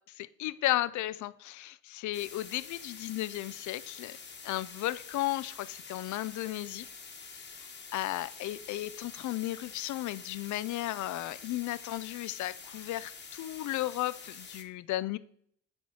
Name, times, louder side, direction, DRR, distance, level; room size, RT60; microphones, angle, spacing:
voice 1, 0.2-4.2 4.4-6.9 7.6-15.2, left 15 dB, 75° left, 17 dB, 0.5 m, -34 dB
sound 1, 2.1-14.6, left 5 dB, 35° left, 1.2 m, -47 dB
9.7 x 4.4 x 4.7 m, 0.66 s
cardioid pair, 90°, 30 cm